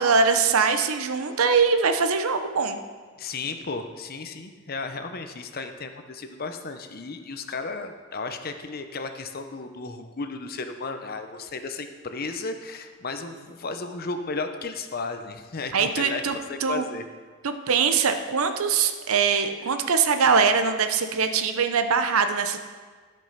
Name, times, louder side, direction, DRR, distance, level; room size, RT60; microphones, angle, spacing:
voice 1, 0.0-2.8 15.7-16.4 16.6-16.8 17.4-22.6, right 5 dB, 80° right, 8 dB, 0.7 m, -22 dB
voice 2, 3.2-17.0, left 3 dB, 45° left, 7 dB, 0.7 m, -34 dB
12.5 x 5.4 x 5.6 m, 1.5 s
head